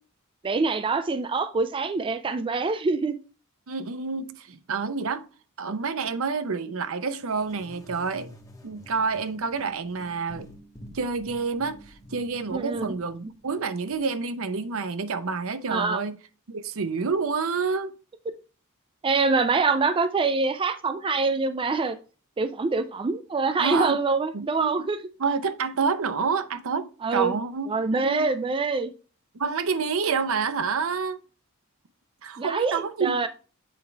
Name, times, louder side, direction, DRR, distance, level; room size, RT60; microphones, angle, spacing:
voice 1, 0.4-3.2 12.5-12.9 15.7-16.0 19.0-22.0 22.4-25.0 27.0-27.3 27.7-28.9 32.4-33.3, right 4 dB, 25° right, 0.4 m, -25 dB
voice 2, 3.7-5.2 5.6-8.3 8.6-10.5 10.9-16.2 16.5-17.9 23.6-24.0 24.3-24.7 25.2-28.3 29.3-31.2 32.2-33.3, right 5 dB, 70° right, 0.6 m, -28 dB
sound 1, 7.2-14.0, left 1 dB, 15° left, 0.9 m, -49 dB
7.3 x 4.6 x 3.3 m
head